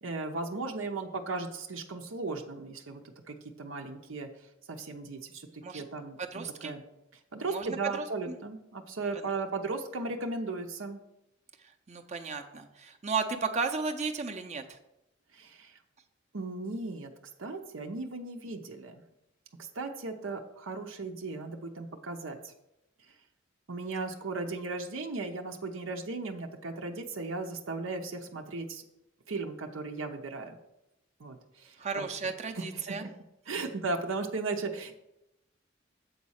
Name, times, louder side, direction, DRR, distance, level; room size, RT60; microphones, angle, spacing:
voice 1, 0.0-3.0 3.3-4.3 4.7-6.8 7.3-11.0 15.3-15.8 16.3-17.1 17.4-19.0 19.6-22.5 23.7-28.8 29.3-30.6 31.2-32.1 32.6-33.1 33.5-35.0, right 3 dB, 85° right, 3 dB, 0.8 m, -36 dB
voice 2, 6.2-6.7 7.4-8.3 11.6-14.8 31.8-33.0 33.5-33.7, right 4 dB, 35° right, 5 dB, 0.7 m, -34 dB
7.8 x 4.2 x 6.4 m, 0.87 s
head